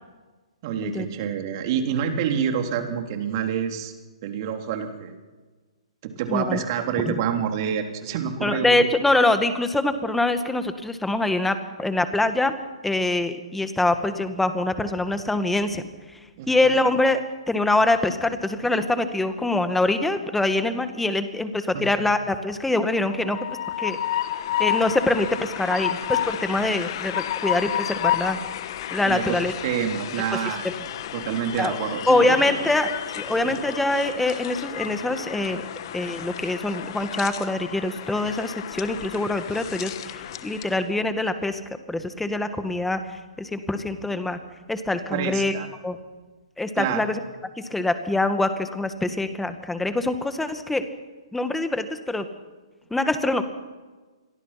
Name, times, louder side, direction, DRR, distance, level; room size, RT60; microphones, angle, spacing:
voice 1, 0.6-3.9 4.2-5.2 6.0-8.8 16.4-16.8 21.7-21.9 29.0-30.6 31.1-32.6 33.4-33.6 45.1-45.7 46.8-47.1, right 8 dB, 40° right, 5 dB, 3.4 m, -27 dB
voice 2, 6.3-6.6 7.0-7.2 8.4-12.5 12.8-15.8 16.5-17.2 17.5-23.4 23.8-24.0 24.6-28.4 28.9-29.5 30.6-30.7 31.6-31.8 32.1-35.6 35.9-41.6 41.9-44.4 44.7-45.5 45.8-46.0 46.6-47.2 47.6-50.8 51.3-52.3 52.9-53.4, left 2 dB, 5° left, 9 dB, 1.8 m, -24 dB
Train, 23.0-40.8, left 11 dB, 50° left, 1.5 m, -31 dB
28.0 x 23.0 x 5.9 m, 1.3 s
hypercardioid pair, 135°, 3 cm